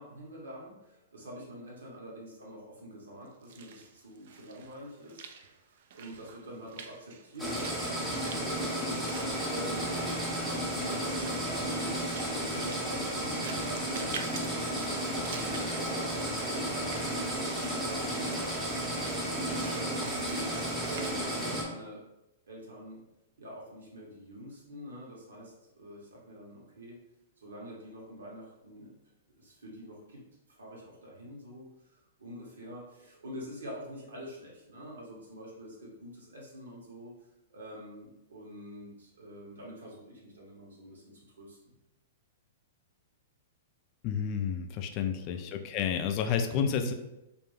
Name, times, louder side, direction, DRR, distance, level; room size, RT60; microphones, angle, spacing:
voice 1, 0.0-10.0 10.2-11.9 12.4-16.4 16.8-18.6 18.9-20.3 20.8-22.0 22.5-23.0 23.4-27.0 27.4-28.9 29.4-30.2 30.5-37.1 37.5-41.7 45.1-45.5, equal, 80° right, -3 dB, 0.9 m, -46 dB
Walk footsteps / Splash splatter, 3.3-21.1, right 6 dB, 60° right, 0.3 m, -48 dB
sound 1, 7.4-21.6, right 1 dB, ahead, 0.7 m, -33 dB
voice 2, 44.0-46.9, left 7 dB, 40° left, 6 dB, 0.3 m, -30 dB
2.4 x 2.1 x 3.2 m, 0.92 s
hypercardioid pair, 115°, 0 cm